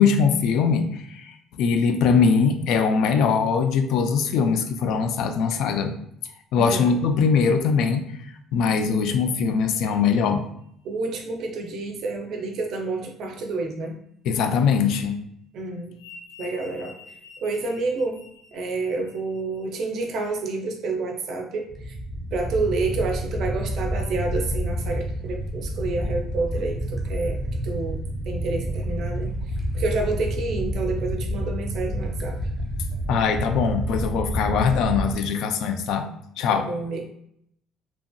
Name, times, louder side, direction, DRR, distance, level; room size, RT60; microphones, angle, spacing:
voice 1, 0.0-5.9 6.5-8.1 8.5-10.5 14.3-15.2 33.1-36.1 36.4-36.7, left 6 dB, 65° left, 7 dB, 0.3 m, -21 dB
voice 2, 6.6-7.0 10.8-14.0 15.5-16.0 16.4-17.0 17.4-18.2 18.5-22.0 22.3-28.0 28.3-29.3 29.7-32.4 36.5-37.1, right 3 dB, 50° right, 4 dB, 0.4 m, -29 dB
sound 1, 10.6-11.0 15.1-19.8, left 4 dB, 45° left, 1.0 m, -48 dB
sound 2, 21.7-35.1, equal, ahead, 0.5 m, -29 dB
2.8 x 2.5 x 2.2 m, 0.72 s
cardioid pair, 150°, 0 cm